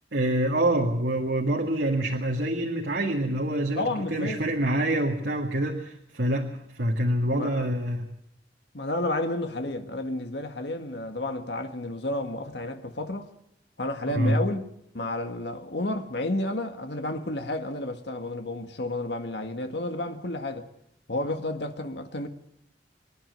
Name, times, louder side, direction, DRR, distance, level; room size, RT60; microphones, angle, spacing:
voice 1, 0.1-8.1 14.1-14.4, right 1 dB, 70° right, 2.0 m, -26 dB
voice 2, 3.8-4.4 7.3-7.7 8.7-13.3 13.8-14.7 14.9-20.7 21.1-22.3, left 1 dB, 75° left, 1.7 m, -31 dB
26.0 x 11.0 x 9.4 m
head